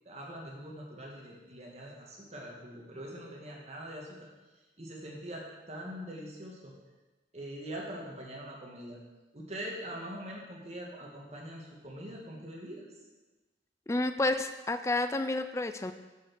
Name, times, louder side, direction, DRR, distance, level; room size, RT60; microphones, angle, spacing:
voice 1, 0.0-4.1 4.8-6.7 7.3-9.0 9.3-12.8, equal, 40° right, -2 dB, 1.6 m, -43 dB
voice 2, 13.9-15.9, left 2 dB, 15° left, 9 dB, 0.4 m, -30 dB
6.9 x 6.1 x 6.1 m, 1.2 s
head